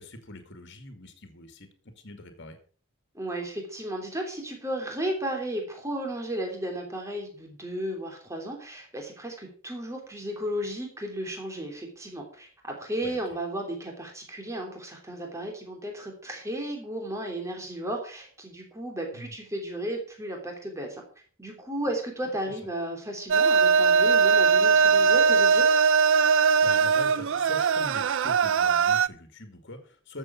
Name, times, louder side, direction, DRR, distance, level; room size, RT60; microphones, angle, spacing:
voice 1, 0.0-2.6 13.0-13.2 19.1-19.3 26.6-30.2, left 1 dB, 55° left, 7 dB, 2.3 m, -43 dB
voice 2, 3.1-21.0 21.4-25.7, right 1 dB, 15° right, 2 dB, 3.1 m, -34 dB
sound 1, 23.3-29.1, right 5 dB, 60° right, 0.5 m, -20 dB
13.5 x 7.4 x 5.8 m, 0.42 s
head